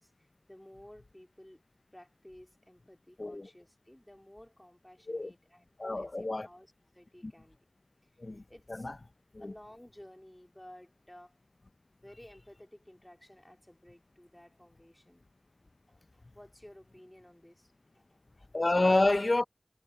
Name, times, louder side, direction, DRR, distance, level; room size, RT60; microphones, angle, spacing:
voice 1, 0.0-1.6 1.9-7.6 8.0-8.2 8.5-8.9 9.4-11.4 11.9-15.2 15.9-18.5, left 1 dB, 20° left, 3.1 m, -55 dB
voice 2, 3.2-3.5 5.1-5.3 5.8-6.5 7.2-7.3 8.2-8.4 8.7-8.9 9.3-9.5 18.5-19.4, left 2 dB, 60° left, 0.5 m, -28 dB
wide cardioid pair, 45°, 0 cm